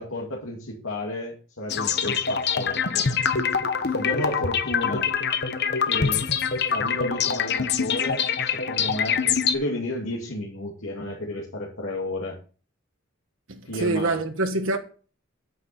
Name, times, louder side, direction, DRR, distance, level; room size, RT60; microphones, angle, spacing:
voice 1, 0.0-3.1 3.9-5.1 5.9-6.3 6.7-12.4 13.6-14.2, left 1 dB, 85° left, 2.4 m, -32 dB
sound 1, 1.7-9.5, left 6 dB, 55° left, 1.1 m, -25 dB
voice 2, 13.5-14.8, right 3 dB, 75° right, 1.4 m, -26 dB
9.8 x 9.5 x 4.3 m
head